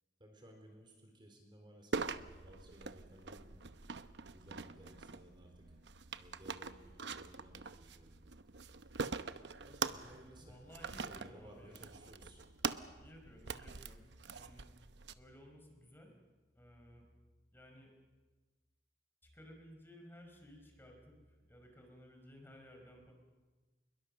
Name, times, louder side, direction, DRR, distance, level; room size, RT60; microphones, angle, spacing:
voice 1, 0.2-2.1 2.4-3.6 4.3-5.8 6.2-8.1 9.6-10.6 10.9-12.4, equal, 30° right, 3 dB, 4.0 m, -58 dB
sound 1, 1.9-15.1, right 4 dB, 90° right, 0.9 m, -44 dB
voice 2, 10.4-11.9 13.0-14.7 15.1-16.1 16.5-17.0 17.5-17.9 19.2-23.1, equal, 15° left, 2 dB, 5.0 m, -57 dB
26.5 x 22.0 x 6.6 m, 1.3 s
head